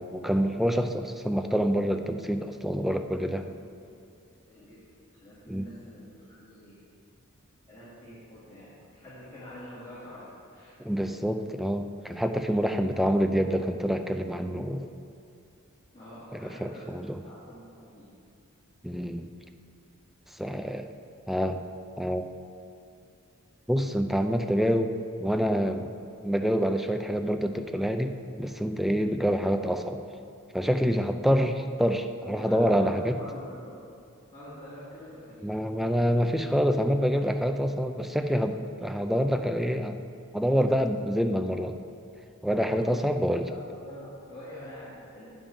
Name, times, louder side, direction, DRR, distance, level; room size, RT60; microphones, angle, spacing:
voice 1, 0.0-3.4 5.5-5.6 10.8-14.9 16.3-17.2 18.8-19.3 20.4-20.9 21.3-21.6 22.0-22.2 23.7-25.9 26.2-30.0 30.5-33.1 35.4-40.0 40.3-41.8 42.4-43.5, equal, ahead, 6 dB, 0.3 m, -27 dB
voice 2, 4.5-4.8 5.1-6.8 7.7-10.8 15.9-16.9 17.2-18.0 28.9-29.1 32.2-33.8 34.3-35.6 42.5-43.0 43.4-45.2, equal, 20° left, -11 dB, 1.8 m, -46 dB
9.0 x 5.3 x 5.1 m, 2.6 s
head